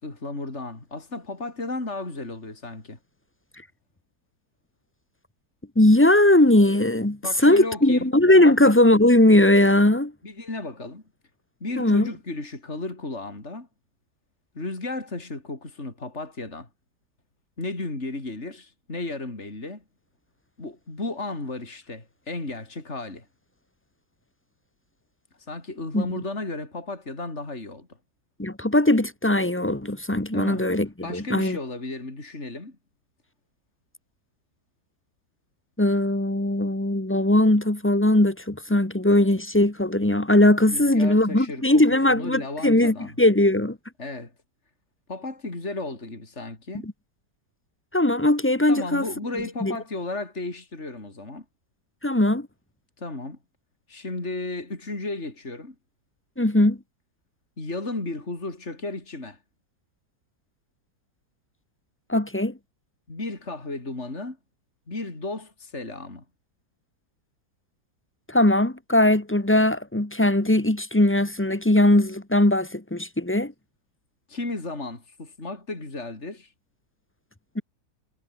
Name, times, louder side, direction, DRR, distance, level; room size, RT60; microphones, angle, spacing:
voice 1, 0.0-3.0 7.2-8.1 8.4-8.8 10.2-11.0 11.6-13.7 14.5-16.7 17.6-19.8 20.6-23.3 25.5-27.9 30.3-30.7 31.0-32.8 40.7-41.8 42.1-43.2 44.0-44.3 45.1-46.9 48.7-51.4 53.0-53.4 53.9-55.7 57.6-59.4 63.1-64.4 64.9-66.2 74.3-76.5, left 2 dB, 40° left, 5.0 m, -34 dB
voice 2, 5.7-10.1 11.8-12.1 25.9-26.1 28.4-31.6 35.8-43.8 46.8-46.9 47.9-49.0 49.6-49.7 52.0-52.5 56.4-56.8 62.1-62.5 68.3-73.5 77.5-77.6, left 1 dB, 10° left, 1.4 m, -19 dB
omnidirectional pair, 1.8 m